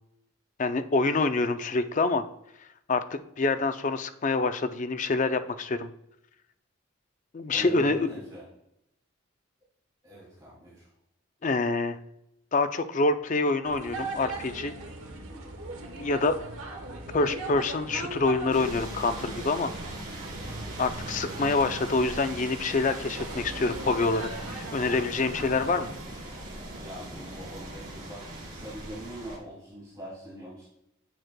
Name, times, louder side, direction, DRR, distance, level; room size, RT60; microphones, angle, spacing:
voice 1, 0.6-2.3 2.9-5.9 7.3-8.1 11.4-12.0 12.5-14.7 16.0-16.4 17.1-19.7 20.8-25.9, left 3 dB, 35° left, 10 dB, 0.4 m, -26 dB
voice 2, 7.5-8.5 10.0-10.9 15.0-15.5 26.8-30.7, right 1 dB, 20° right, -9 dB, 2.5 m, -42 dB
sound 1, 13.6-25.9, right 2 dB, 80° right, 1.1 m, -40 dB
sound 2, 18.5-29.4, right 1 dB, 40° right, 2.8 m, -40 dB
9.1 x 6.1 x 2.2 m, 0.82 s
head